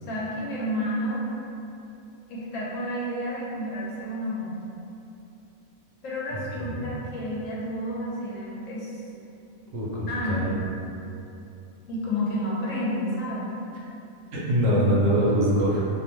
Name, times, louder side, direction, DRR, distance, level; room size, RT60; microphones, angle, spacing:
voice 1, 0.0-1.2 2.3-4.7 6.0-9.0 10.1-10.6 11.9-13.5, equal, 75° left, -6 dB, 1.0 m, -30 dB
voice 2, 6.6-6.9 9.7-10.5 14.3-15.8, equal, 70° right, -6 dB, 1.0 m, -23 dB
2.6 x 2.1 x 3.0 m, 2.7 s
omnidirectional pair, 1.4 m